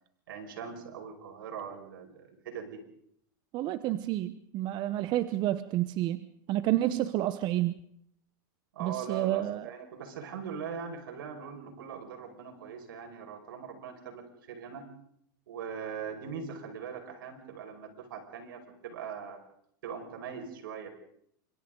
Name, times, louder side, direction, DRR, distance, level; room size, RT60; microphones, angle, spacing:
voice 1, 0.3-2.8 8.7-14.9 15.5-19.4 19.8-20.9, right 7 dB, 80° right, 5 dB, 5.5 m, -41 dB
voice 2, 3.5-6.2 6.5-7.8 8.8-9.7, right 14 dB, 40° right, 13 dB, 1.0 m, -29 dB
29.0 x 25.5 x 3.9 m, 0.70 s
hypercardioid pair, 125°, 11 cm